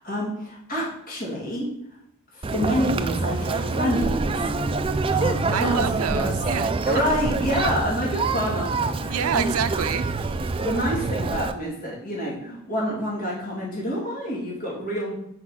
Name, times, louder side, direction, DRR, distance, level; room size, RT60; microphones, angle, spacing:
voice 1, 0.0-1.7 2.3-4.5 5.1-6.4 6.9-9.4 10.6-15.2, equal, 40° left, -4 dB, 2.5 m, -28 dB
Conversation, 2.4-11.5, right 3 dB, 25° right, 0.3 m, -26 dB
voice 2, 5.5-6.7 9.1-10.1, right 7 dB, 80° right, 11 dB, 0.5 m, -27 dB
5.9 x 4.7 x 5.9 m, 0.76 s
head